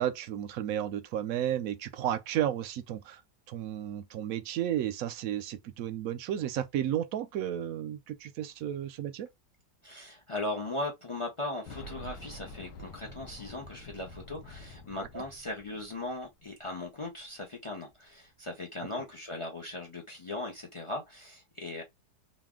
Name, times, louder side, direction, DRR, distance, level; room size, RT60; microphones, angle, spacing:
voice 1, 0.0-3.2 3.5-9.3 15.1-15.2, right 11 dB, 70° right, 0.8 m, -33 dB
voice 2, 9.8-21.8, left 2 dB, 55° left, 0.3 m, -38 dB
Boom, 11.7-16.4 16.7-16.8 17.9-18.0, left 1 dB, 80° left, 1.5 m, -47 dB
4.0 x 2.3 x 3.7 m
omnidirectional pair, 1.9 m